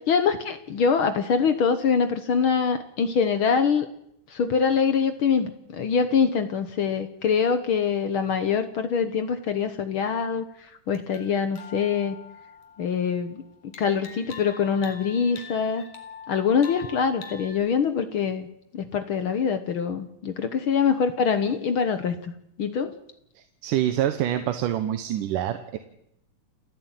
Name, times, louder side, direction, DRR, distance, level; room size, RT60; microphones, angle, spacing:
voice 1, 0.1-3.9 4.3-10.4 10.9-12.2 12.8-13.4 13.8-15.8 16.3-18.5 18.7-22.3 22.6-22.9, left 6 dB, 60° left, 9 dB, 1.4 m, -24 dB
sound 1, 11.0-13.2 13.7-17.5, left 6 dB, 80° left, 4.2 m, -44 dB
voice 2, 23.4-25.8, right 11 dB, 90° right, 8 dB, 2.6 m, -26 dB
30.0 x 11.5 x 9.0 m, 0.79 s
omnidirectional pair, 3.6 m